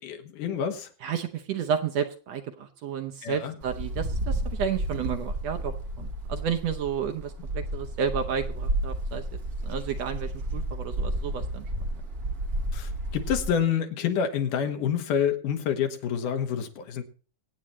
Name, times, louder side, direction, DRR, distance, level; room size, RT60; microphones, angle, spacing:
voice 1, 0.0-0.9 3.2-3.5 12.7-17.0, left 8 dB, 70° left, 6 dB, 2.9 m, -28 dB
voice 2, 1.0-9.2 9.6-11.7, right 7 dB, 70° right, 7 dB, 1.6 m, -31 dB
Wind, 3.6-13.6, right 1 dB, 40° right, 1.3 m, -32 dB
24.5 x 8.7 x 3.1 m, 0.40 s
omnidirectional pair, 4.0 m